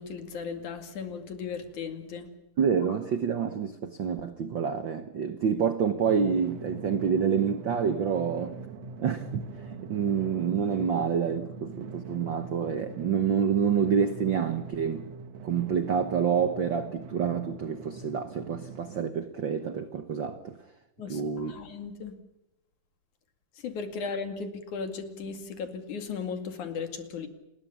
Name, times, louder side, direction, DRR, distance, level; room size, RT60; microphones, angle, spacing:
voice 1, 0.0-2.3 21.0-22.1 23.6-27.3, left 5 dB, 65° left, 3.6 m, -36 dB
voice 2, 2.6-8.6 9.0-15.0 15.4-20.6 21.1-21.5, right 7 dB, 75° right, 1.0 m, -28 dB
Drum, 6.1-19.0, right 4 dB, 55° right, 2.3 m, -43 dB
29.0 x 20.5 x 7.1 m
omnidirectional pair, 3.8 m